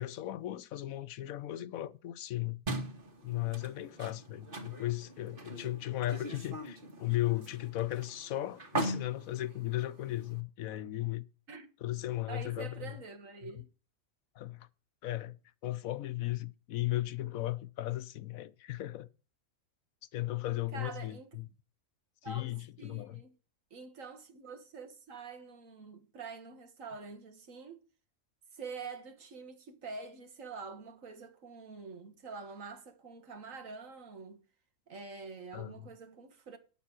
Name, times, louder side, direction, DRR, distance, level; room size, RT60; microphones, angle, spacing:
voice 1, 0.0-2.6 3.2-11.2 11.8-13.0 13.4-13.5 14.4-14.7 15.0-15.4 15.6-19.1 20.1-21.5 22.2-23.2 35.5-35.9, left 15 dB, 85° left, 1.1 m, -36 dB
sound 1, 2.7-10.4, right 1 dB, 40° right, 1.9 m, -41 dB
voice 2, 12.3-13.7 20.7-21.4 22.2-22.4 22.8-23.3 23.7-27.8 28.5-34.4 34.9-36.6, right 4 dB, 70° right, 1.9 m, -46 dB
9.6 x 7.2 x 6.0 m
omnidirectional pair, 1.4 m